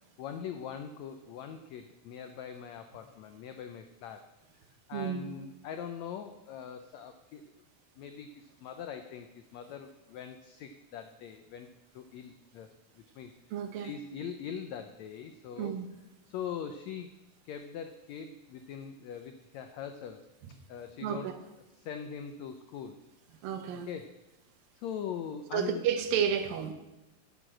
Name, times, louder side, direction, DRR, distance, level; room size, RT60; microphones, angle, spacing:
voice 1, 0.2-4.3 4.9-7.5 8.0-11.7 11.9-13.3 13.7-15.7 16.3-17.1 17.4-20.2 20.7-21.3 21.8-23.0 23.9-24.1 24.7-25.8, left 8 dB, 90° left, 7 dB, 1.5 m, -42 dB
voice 2, 4.9-5.3 13.5-13.9 15.6-15.9 21.0-21.3 23.4-23.9 25.5-26.7, right 8 dB, 85° right, 8 dB, 2.8 m, -31 dB
11.0 x 7.0 x 7.6 m, 0.99 s
omnidirectional pair, 4.0 m